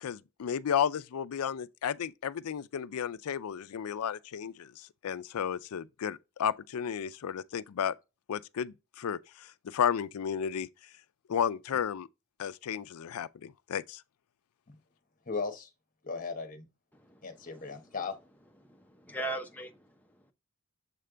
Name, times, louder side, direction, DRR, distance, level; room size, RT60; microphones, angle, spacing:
voice 1, 0.0-7.9 8.3-10.7 11.3-12.1 12.4-14.0, left 8 dB, 90° left, 0.4 m, -33 dB
voice 2, 15.3-15.7 16.0-16.7 17.2-18.1, left 4 dB, 40° left, 1.1 m, -37 dB
voice 3, 16.9-17.9 18.6-20.3, right 2 dB, 5° left, 0.7 m, -41 dB
7.5 x 3.3 x 3.8 m
head